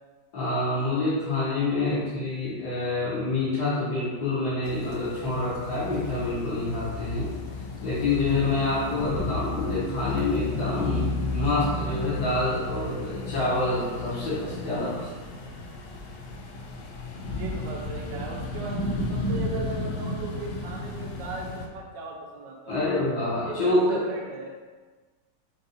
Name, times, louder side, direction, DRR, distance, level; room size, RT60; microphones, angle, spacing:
voice 1, 0.3-7.3 7.8-15.1 22.7-24.0, left 2 dB, 65° left, -11 dB, 1.8 m, -27 dB
sound 1, 4.6-21.7, left 2 dB, 80° left, 1.2 m, -33 dB
voice 2, 17.3-22.9 23.4-24.6, right 4 dB, 85° right, -1 dB, 1.3 m, -37 dB
5.3 x 2.6 x 2.7 m, 1.4 s
omnidirectional pair, 1.9 m